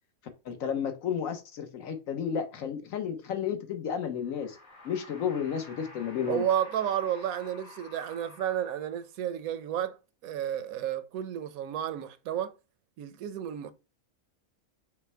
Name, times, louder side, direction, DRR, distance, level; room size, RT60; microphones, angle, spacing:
voice 1, 0.4-4.6 4.8-6.4, left 8 dB, 70° left, 1.2 m, -32 dB
sound 1, 4.1-9.2, left 2 dB, 50° left, 1.4 m, -51 dB
voice 2, 6.3-10.0 10.2-12.5 13.0-13.7, right 10 dB, 85° right, 1.0 m, -31 dB
5.6 x 2.1 x 4.3 m
omnidirectional pair, 1.4 m